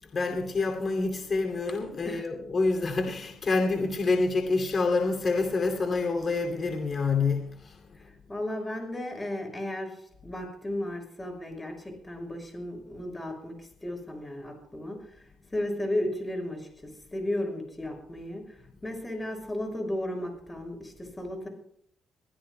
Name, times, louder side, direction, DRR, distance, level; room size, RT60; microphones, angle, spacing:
voice 1, 0.0-8.1, left 3 dB, 45° left, 2.5 m, -27 dB
voice 2, 8.3-9.9 10.2-13.6 13.8-21.5, left 1 dB, 15° left, 6.3 m, -34 dB
24.0 x 16.0 x 2.2 m
cardioid pair, 90°, 0 cm